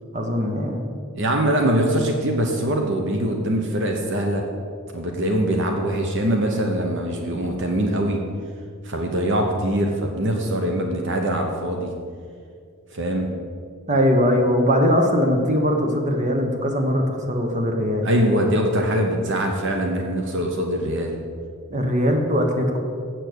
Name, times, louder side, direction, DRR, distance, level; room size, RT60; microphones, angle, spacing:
voice 1, 0.1-0.8 13.9-18.1 21.7-22.8, equal, 35° right, 3 dB, 1.2 m, -21 dB
voice 2, 1.1-4.4 4.9-8.2 8.8-11.9 12.9-13.3 18.0-21.2, right 1 dB, 55° right, 2 dB, 0.9 m, -23 dB
7.9 x 6.9 x 8.0 m, 2.3 s
head